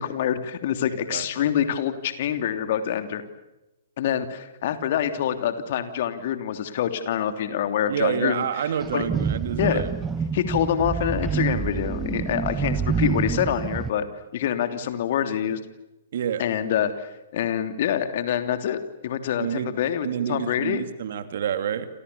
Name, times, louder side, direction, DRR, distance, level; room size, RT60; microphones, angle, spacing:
voice 1, 0.0-3.2 4.0-8.4 8.9-9.1 9.6-9.8 10.3-14.1 14.3-15.6 16.4-18.8 19.0-20.8, left 9 dB, 50° left, 9 dB, 3.0 m, -26 dB
voice 2, 1.1-1.5 7.9-9.9 16.1-16.4 19.4-19.7 20.0-21.9, right 8 dB, 60° right, 10 dB, 2.7 m, -28 dB
sound 1, 8.8-13.9, right 6 dB, 15° right, 1.3 m, -27 dB
29.5 x 27.5 x 7.0 m, 1.0 s
figure-of-eight pair, 120°, 0 cm